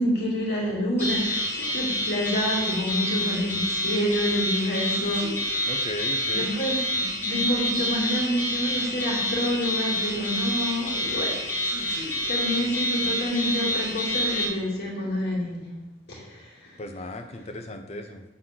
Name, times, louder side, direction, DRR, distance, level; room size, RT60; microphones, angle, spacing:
voice 1, 0.0-6.0 6.3-11.4 11.7-15.7 16.1-16.8, equal, 55° left, -4 dB, 2.3 m, -28 dB
sound 1, 1.0-14.5, equal, 10° left, 2.1 m, -28 dB
voice 2, 5.7-6.5 16.8-18.2, left 1 dB, 35° left, 5 dB, 0.7 m, -36 dB
7.8 x 4.2 x 5.7 m, 0.98 s
head